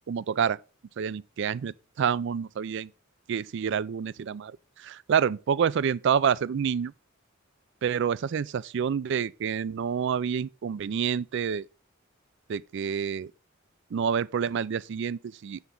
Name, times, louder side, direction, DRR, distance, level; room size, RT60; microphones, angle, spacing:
voice 1, 0.1-0.6 1.0-2.9 3.3-6.9 7.8-11.7 12.5-13.3 13.9-15.6, right 7 dB, 60° right, 0.3 m, -28 dB
8.0 x 6.9 x 3.8 m
head